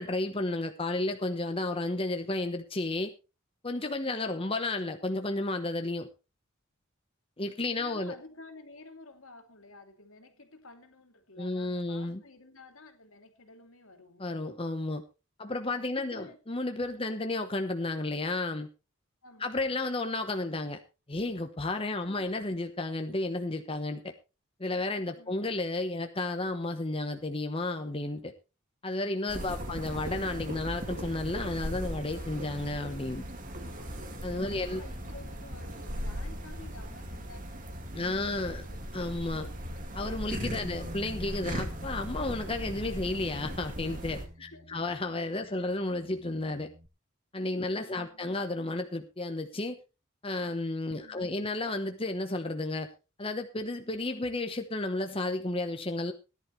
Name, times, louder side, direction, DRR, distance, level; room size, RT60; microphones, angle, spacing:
voice 1, 0.0-3.1 3.6-6.1 7.4-8.1 11.4-12.2 14.2-15.0 15.4-18.7 19.4-20.8 21.1-24.1 24.6-28.3 28.8-33.2 34.2-34.8 37.9-38.6 38.9-39.5 39.9-46.7 47.3-49.8 50.2-52.9 53.2-56.1, left 2 dB, 25° left, 1.0 m, -32 dB
voice 2, 7.7-14.3 15.5-16.4 16.9-17.4 19.2-19.9 22.0-22.4 25.1-25.6 29.2-29.7 34.4-37.7 38.0-38.8 39.2-39.4 44.4-44.8 45.6-45.7 47.7-48.4 51.0-51.5, left 2 dB, 80° left, 2.7 m, -53 dB
sound 1, 29.3-44.3, equal, 40° right, 2.3 m, -38 dB
Bass guitar, 40.6-46.9, equal, 25° right, 1.0 m, -49 dB
17.5 x 11.0 x 3.2 m
head